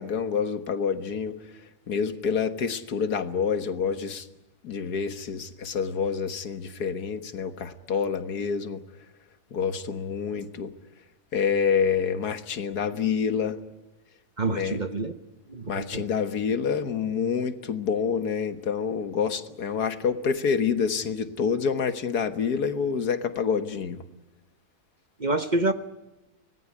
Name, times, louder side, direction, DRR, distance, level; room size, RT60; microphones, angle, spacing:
voice 1, 0.0-1.4 1.9-4.3 4.6-8.8 9.5-10.7 11.3-13.6 14.5-14.8 15.7-24.0, left 6 dB, 85° left, 10 dB, 2.0 m, -27 dB
voice 2, 14.4-15.1 15.5-16.1 25.2-25.7, right 2 dB, 35° right, 9 dB, 1.0 m, -27 dB
25.0 x 18.5 x 9.8 m, 1.0 s
omnidirectional pair, 1.6 m